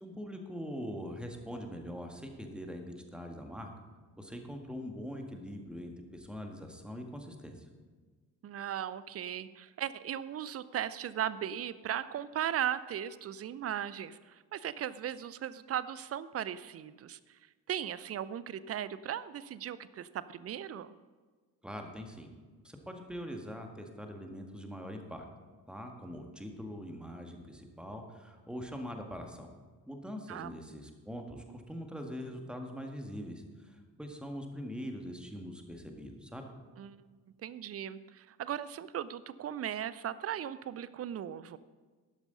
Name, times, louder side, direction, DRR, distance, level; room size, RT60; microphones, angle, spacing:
voice 1, 0.0-3.7 4.2-7.7 21.6-22.3 22.6-25.3 25.7-29.5 29.9-36.5, equal, ahead, 3 dB, 1.8 m, -43 dB
voice 2, 8.4-17.2 17.7-20.9 30.3-30.6 36.8-37.1 37.4-41.6, right 10 dB, 30° right, 16 dB, 0.5 m, -37 dB
12.5 x 11.5 x 4.0 m, 1.4 s
figure-of-eight pair, 45°, 47 cm